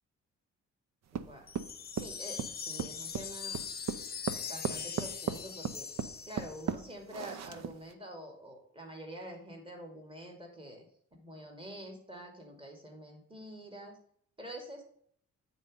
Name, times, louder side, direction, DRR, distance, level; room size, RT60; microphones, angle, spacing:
voice 1, 1.1-1.5 1.9-3.6 4.5-5.9 6.3-14.0 14.4-14.8, equal, 15° right, 2 dB, 2.7 m, -47 dB
sound 1, 1.1-7.9, right 7 dB, 60° right, 0.8 m, -37 dB
sound 2, 1.5-6.8, left 6 dB, 30° left, 0.8 m, -41 dB
8.8 x 4.3 x 5.1 m, 0.63 s
cardioid pair, 90°, 30 cm